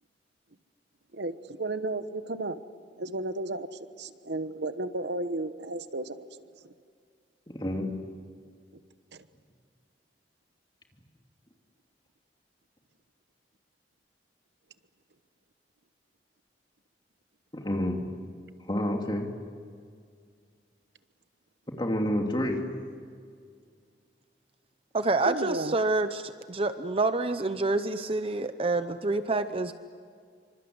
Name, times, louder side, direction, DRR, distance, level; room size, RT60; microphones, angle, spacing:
voice 1, 1.1-2.6 3.0-3.7 4.0-6.2 25.3-25.7, right 2 dB, 70° right, 1.1 m, -33 dB
voice 2, 7.5-7.9 17.6-18.0 18.7-19.3 21.8-22.6, left 1 dB, 25° left, 2.9 m, -28 dB
voice 3, 24.9-29.7, right 2 dB, 30° right, 0.8 m, -27 dB
27.5 x 25.5 x 8.0 m
head